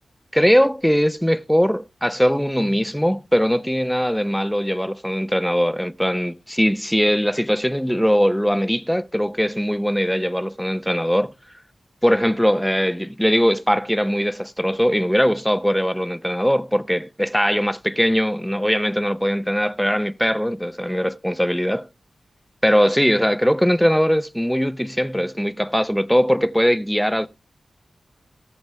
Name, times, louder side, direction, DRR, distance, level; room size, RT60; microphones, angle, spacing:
voice 1, 0.3-11.3 12.0-21.8 22.6-27.3, equal, 5° left, 0.7 m, -20 dB
17.0 x 7.0 x 3.4 m
cardioid pair, 55°, 0 cm